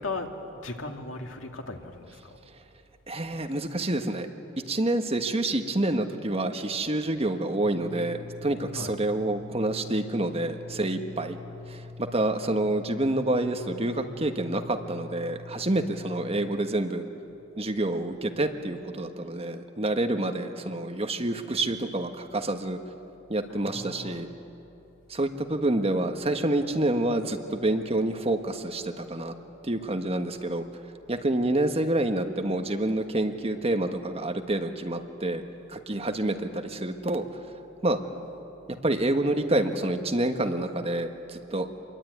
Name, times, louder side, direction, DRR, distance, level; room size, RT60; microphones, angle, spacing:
voice 1, 0.0-2.4 8.7-9.0 23.5-24.2, left 3 dB, 85° left, 4 dB, 2.4 m, -37 dB
voice 2, 3.1-4.3 4.7-11.4 11.7-17.0 17.6-22.8 23.3-24.3 25.1-29.3 29.6-30.7 31.1-35.4 35.7-37.4 37.8-38.0 38.8-41.7, right 1 dB, 30° right, 6 dB, 1.5 m, -28 dB
sound 1, 7.6-16.6, left 3 dB, 80° right, 4.7 m, -44 dB
27.0 x 22.5 x 9.5 m, 2.8 s
head